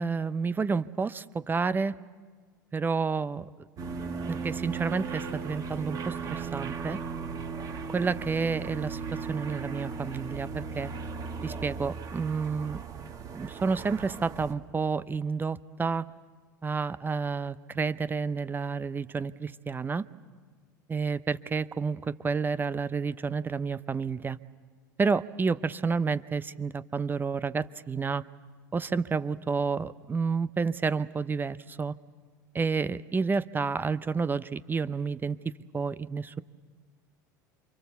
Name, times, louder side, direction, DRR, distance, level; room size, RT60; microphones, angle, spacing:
voice 1, 0.0-2.0 2.7-3.5 4.3-7.0 7.9-10.9 11.4-12.8 13.3-16.1 16.6-20.0 20.9-24.4 25.0-28.2 28.7-31.9 32.5-36.4, right 5 dB, 20° right, 16 dB, 0.7 m, -30 dB
sound 1, 3.8-14.5, right 5 dB, 35° right, 2.1 m, -37 dB
28.5 x 24.5 x 7.1 m, 1.5 s
figure-of-eight pair, 75°, 10 cm